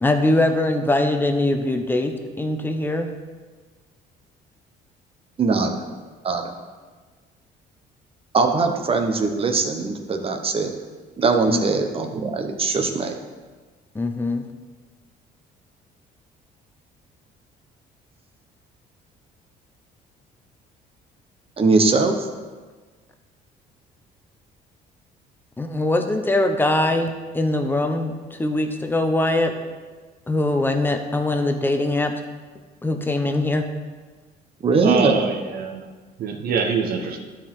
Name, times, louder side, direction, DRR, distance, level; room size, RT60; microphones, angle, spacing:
voice 1, 0.0-3.1 11.5-11.7 13.9-14.4 25.6-29.5 30.3-32.1 32.8-33.6, left 2 dB, 10° left, 6 dB, 0.8 m, -22 dB
voice 2, 5.4-5.8 6.2-6.5 8.3-10.7 11.2-13.1 21.6-22.3 34.6-35.2, right 4 dB, 35° right, 5 dB, 1.0 m, -21 dB
voice 3, 34.8-35.9 36.2-37.2, right 5 dB, 60° right, 4 dB, 1.1 m, -24 dB
12.5 x 5.0 x 3.7 m, 1.4 s
cardioid pair, 110°, 17 cm